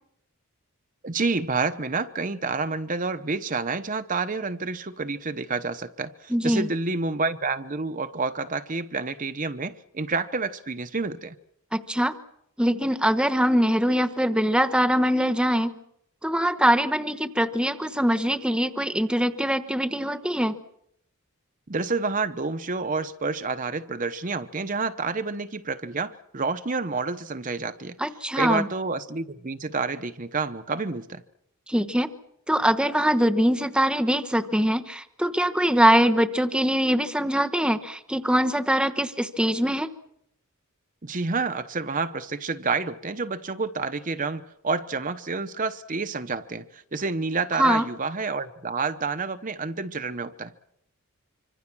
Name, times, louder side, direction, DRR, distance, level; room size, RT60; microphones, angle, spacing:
voice 1, 1.0-11.4 21.7-28.0 28.3-31.2 41.0-50.5, right 4 dB, 35° right, 0.9 m, -29 dB
voice 2, 6.3-6.7 11.7-12.1 12.6-15.8 16.2-20.6 28.0-28.7 31.7-32.1 32.5-39.9 47.6-47.9, equal, 5° right, 1.1 m, -23 dB
25.5 x 25.5 x 6.2 m
head